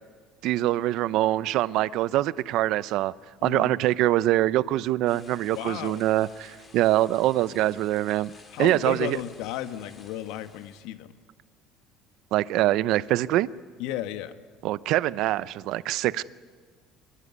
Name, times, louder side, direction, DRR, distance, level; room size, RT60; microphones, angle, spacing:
voice 1, 0.4-3.1 3.4-8.3 8.6-9.2 12.3-13.5 14.6-16.2, right 15 dB, 65° right, 18 dB, 0.7 m, -24 dB
sound 1, 5.1-10.8, left 4 dB, 30° left, 4.0 m, -53 dB
voice 2, 5.5-6.0 8.5-11.1 13.8-14.3, left 12 dB, 80° left, 10 dB, 1.4 m, -34 dB
26.0 x 21.5 x 9.7 m, 1.5 s
cardioid pair, 140°, 0 cm